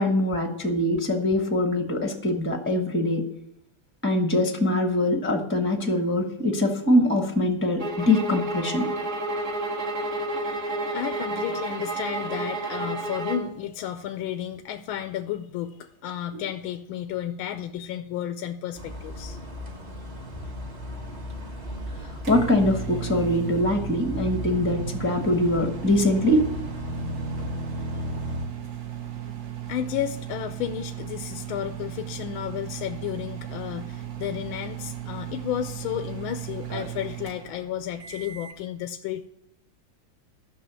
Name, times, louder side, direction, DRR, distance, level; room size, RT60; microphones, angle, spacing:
voice 1, 0.0-3.2 4.0-8.9 16.3-16.4 22.3-26.4, left 1 dB, 10° left, 4 dB, 0.7 m, -23 dB
sound 1, 7.8-13.5, right 2 dB, 40° right, 1.6 m, -30 dB
voice 2, 10.9-19.4 29.7-39.2, left 10 dB, 85° left, 8 dB, 1.4 m, -32 dB
sound 2, 18.8-28.5, left 1 dB, 25° right, 1.2 m, -36 dB
sound 3, 21.7-38.6, right 11 dB, 65° right, 1.9 m, -36 dB
12.0 x 6.1 x 8.0 m, 0.78 s
omnidirectional pair, 2.3 m